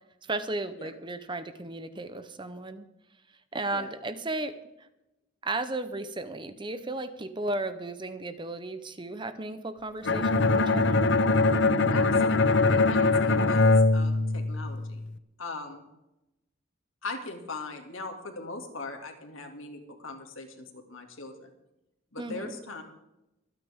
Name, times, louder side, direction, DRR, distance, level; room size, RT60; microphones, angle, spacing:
voice 1, 0.3-2.8 3.5-4.6 5.4-11.0 22.2-22.5, right 2 dB, 25° right, 11 dB, 0.8 m, -34 dB
Bowed string instrument, 10.1-15.0, left 3 dB, 60° left, 0.8 m, -22 dB
voice 2, 11.9-15.1 15.4-15.9 17.0-21.5 22.1-22.8, left 3 dB, 80° left, 4 dB, 2.6 m, -40 dB
24.5 x 9.5 x 3.7 m, 0.91 s
head